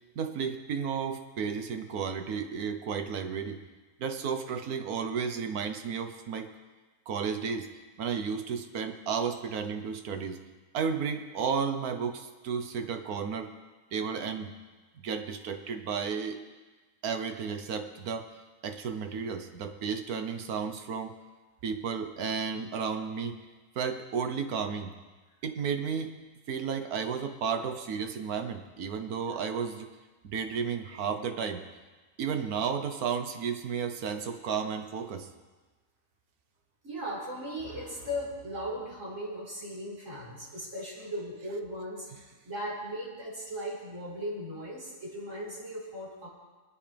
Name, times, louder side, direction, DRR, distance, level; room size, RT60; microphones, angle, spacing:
voice 1, 0.2-3.6 4.0-6.5 7.1-7.7 8.0-10.4 10.7-13.5 13.9-14.5 15.0-16.4 17.0-18.3 18.6-21.1 21.6-23.4 23.7-24.9 25.4-26.1 26.5-29.9 30.2-31.6 32.2-35.3, right 6 dB, 70° right, 8 dB, 1.4 m, -33 dB
voice 2, 36.8-46.3, equal, 50° right, -6 dB, 4.8 m, -38 dB
24.5 x 9.2 x 3.4 m, 1.3 s
omnidirectional pair, 1.6 m